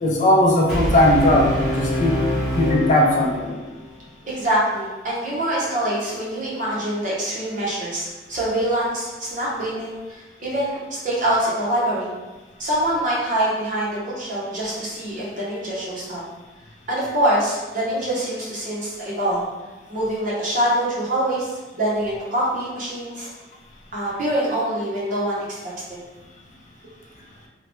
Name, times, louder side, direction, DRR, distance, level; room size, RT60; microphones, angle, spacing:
voice 1, 0.0-2.1 2.5-3.6, left 1 dB, 40° left, -1 dB, 0.4 m, -18 dB
Brass instrument, 0.7-3.8, equal, 5° right, 1.4 m, -25 dB
voice 2, 4.3-12.1 12.6-16.2 16.9-19.4 19.9-23.3 23.9-25.6, right 1 dB, 45° right, -6 dB, 0.8 m, -24 dB
2.8 x 2.2 x 3.0 m, 1.2 s
head